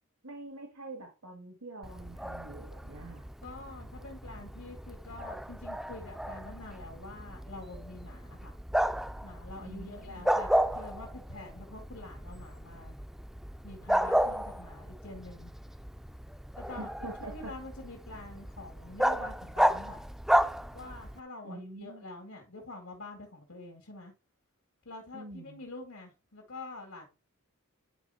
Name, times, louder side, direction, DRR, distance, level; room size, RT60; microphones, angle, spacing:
voice 1, 0.2-3.3 9.6-10.2 16.8-17.5 21.4-22.0 25.1-25.6, right 2 dB, 75° right, 1.9 m, -45 dB
Bark, 1.8-21.2, equal, ahead, 0.5 m, -33 dB
voice 2, 3.4-8.5 9.2-13.0 13.6-15.5 16.6-20.0 20.7-24.1 24.9-27.1, left 2 dB, 80° left, 2.1 m, -46 dB
10.5 x 3.5 x 5.6 m
head